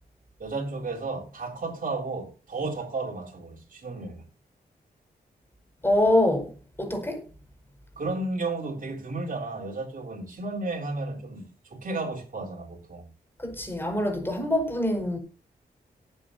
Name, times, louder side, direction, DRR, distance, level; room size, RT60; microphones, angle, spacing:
voice 1, 0.4-4.3 8.0-13.1, right 3 dB, 55° right, 3.9 m, -33 dB
voice 2, 5.8-6.5 6.8-7.2 13.4-15.2, left 1 dB, 15° left, 5.1 m, -24 dB
18.0 x 8.9 x 2.8 m
cardioid pair, 85°, 17 cm